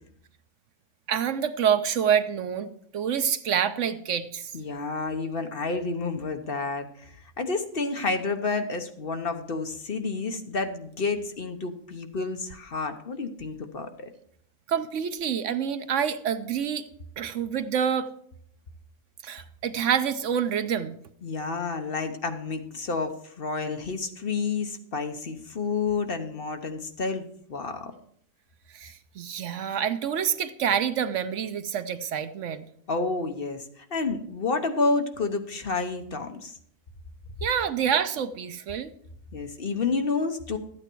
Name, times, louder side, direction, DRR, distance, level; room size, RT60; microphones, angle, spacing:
voice 1, 1.1-2.7 2.9-4.5 14.7-16.9 17.2-18.1 19.2-21.0 28.7-32.7 37.4-38.9, right 8 dB, 70° right, 11 dB, 1.0 m, -27 dB
voice 2, 4.5-14.1 21.2-27.9 32.9-36.6 39.3-40.6, left 4 dB, 50° left, 6 dB, 1.1 m, -30 dB
13.0 x 9.1 x 4.6 m, 0.66 s
omnidirectional pair, 1.4 m